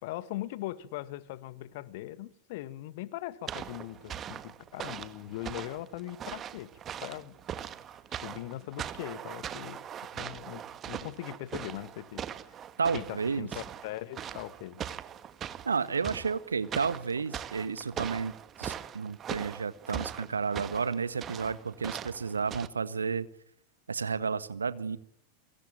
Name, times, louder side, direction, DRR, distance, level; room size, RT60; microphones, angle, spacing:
voice 1, 0.0-6.7 7.0-7.4 8.2-9.8 10.1-12.3 12.9-14.8, left 15 dB, 50° left, 14 dB, 1.9 m, -40 dB
sound 1, 3.5-22.7, right 9 dB, 25° right, 1.8 m, -41 dB
voice 2, 12.8-13.5 15.6-18.3 18.6-23.3 23.9-25.0, right 5 dB, 75° right, 14 dB, 1.6 m, -31 dB
26.5 x 24.5 x 9.0 m, 0.68 s
figure-of-eight pair, 90°, 0 cm